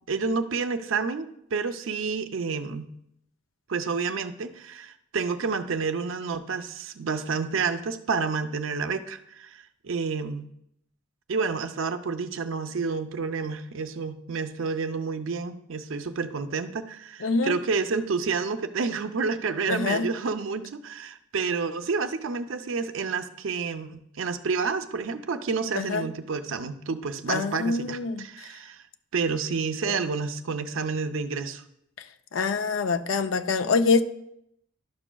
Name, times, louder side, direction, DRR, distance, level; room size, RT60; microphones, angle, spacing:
voice 1, 0.1-2.9 3.7-10.5 11.3-28.8 29.1-31.6, right 4 dB, 75° right, 0.5 m, -29 dB
voice 2, 17.2-17.5 19.7-20.1 25.7-26.1 27.3-28.3 29.9-30.0 32.3-34.0, left 4 dB, 80° left, 0.5 m, -25 dB
11.5 x 6.0 x 2.3 m
head